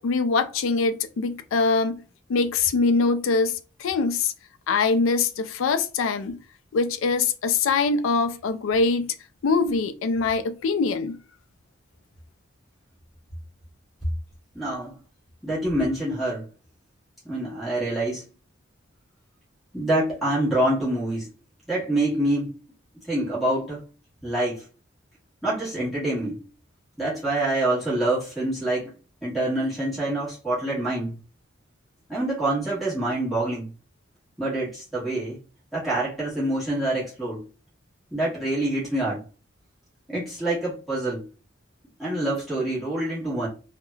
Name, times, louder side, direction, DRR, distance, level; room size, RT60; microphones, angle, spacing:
voice 1, 0.0-2.0 2.3-4.3 4.7-6.4 6.7-9.1 9.4-11.2, left 4 dB, 80° left, 0.3 m, -23 dB
voice 2, 14.5-15.0 15.4-16.5 17.2-18.2 19.7-21.3 21.7-22.5 23.1-23.8 24.2-24.6 25.4-26.4 27.0-28.9 29.2-31.2 32.1-33.7 34.4-35.4 35.7-37.4 38.1-39.2 40.1-41.3 42.0-43.5, right 1 dB, ahead, 1.1 m, -26 dB
3.1 x 2.1 x 2.2 m
head